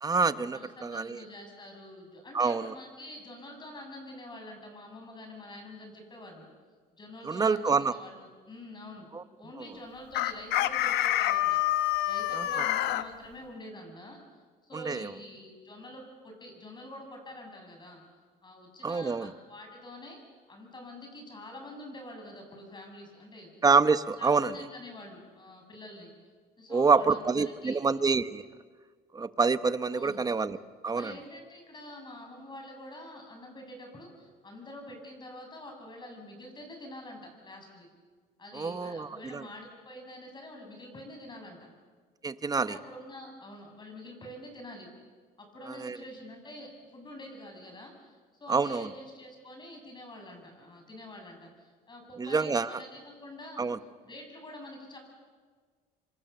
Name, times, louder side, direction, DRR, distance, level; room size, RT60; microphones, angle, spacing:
voice 1, 0.0-1.2 2.3-2.7 7.3-7.9 9.1-9.2 12.3-12.7 14.7-15.1 18.8-19.3 23.6-24.5 26.7-28.4 29.1-30.6 30.8-31.1 38.5-39.5 42.2-42.8 45.8-46.0 48.5-48.9 52.2-52.7 53.6-53.8, right 4 dB, 20° right, 13 dB, 1.0 m, -27 dB
voice 2, 0.5-6.5 7.0-9.1 9.4-11.6 12.1-14.2 14.6-18.0 18.4-20.2 20.5-23.5 24.2-26.1 26.6-27.3 27.6-27.8 29.9-30.2 30.9-37.9 38.4-41.7 42.6-44.9 45.4-53.7 54.0-55.0, left 1 dB, 25° left, 3 dB, 7.2 m, -46 dB
Chicken rooster, 10.1-13.0, left 14 dB, 80° left, 1.1 m, -27 dB
26.0 x 26.0 x 6.9 m, 1.5 s
cardioid pair, 110°, 17 cm